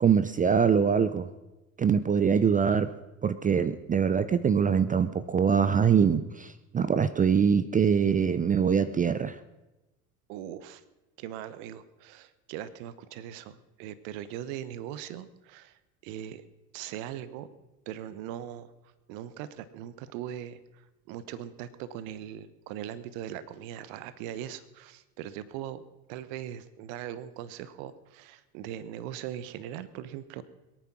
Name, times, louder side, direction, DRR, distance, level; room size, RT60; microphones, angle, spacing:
voice 1, 0.0-1.3 1.8-2.9 3.2-9.4, right 7 dB, 20° right, 14 dB, 0.5 m, -23 dB
voice 2, 10.3-10.8 11.2-16.4 16.7-17.5 17.9-18.7 19.1-25.8 26.1-30.4, right 11 dB, 60° right, 15 dB, 1.1 m, -40 dB
21.5 x 9.2 x 6.1 m, 1.0 s
hypercardioid pair, 80°, 45 cm